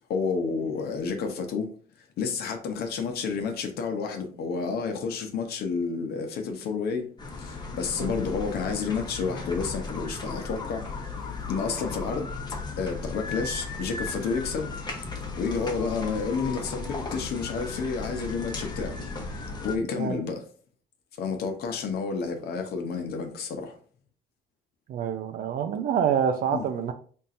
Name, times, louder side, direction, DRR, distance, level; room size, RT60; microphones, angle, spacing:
voice 1, 0.1-1.7 2.2-7.1 7.4-11.2 11.5-12.3 12.8-14.7 15.3-20.5 21.2-23.8 26.5-26.7, left 5 dB, 70° left, 0.9 m, -30 dB
sound 1, 7.2-19.8, left 3 dB, 25° left, 1.0 m, -36 dB
voice 2, 24.9-26.9, right 8 dB, 60° right, 0.5 m, -26 dB
4.2 x 3.7 x 2.6 m
cardioid pair, 110°, 17 cm